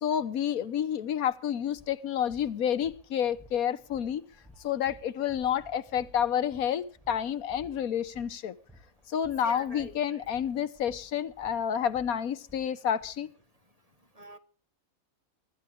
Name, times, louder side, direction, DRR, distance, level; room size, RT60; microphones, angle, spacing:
voice 1, 0.0-4.2 4.6-8.5 9.1-13.3, left 9 dB, 85° left, 1.4 m, -29 dB
sound 1, 1.2-1.3 1.7-13.1, equal, ahead, 4.3 m, -56 dB
voice 2, 9.4-10.3 14.2-14.4, right 1 dB, 30° right, 1.1 m, -46 dB
24.0 x 12.5 x 3.6 m
omnidirectional pair, 1.5 m